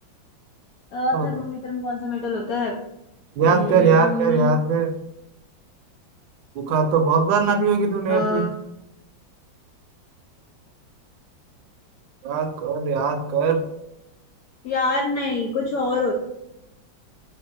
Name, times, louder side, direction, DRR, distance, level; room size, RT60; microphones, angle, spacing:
voice 1, 0.9-2.8 3.4-4.5 8.1-8.6 14.6-16.1, left 3 dB, 80° left, 0 dB, 0.8 m, -26 dB
voice 2, 3.4-4.9 6.6-8.5 12.2-13.6, right 5 dB, 80° right, 6 dB, 1.2 m, -20 dB
3.0 x 2.8 x 3.6 m, 0.85 s
omnidirectional pair, 2.1 m